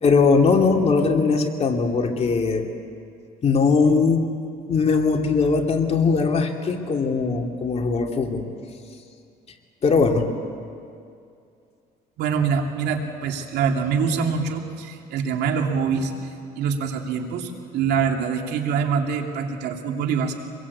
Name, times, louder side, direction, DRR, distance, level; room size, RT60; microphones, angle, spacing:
voice 1, 0.0-2.6 3.4-4.3 4.7-8.4 9.8-10.3, left 4 dB, 40° left, 2 dB, 2.7 m, -20 dB
voice 2, 12.2-16.1 16.5-20.3, right 6 dB, 80° right, 2 dB, 2.8 m, -24 dB
25.0 x 22.0 x 8.5 m, 2.4 s
cardioid pair, 110°, 17 cm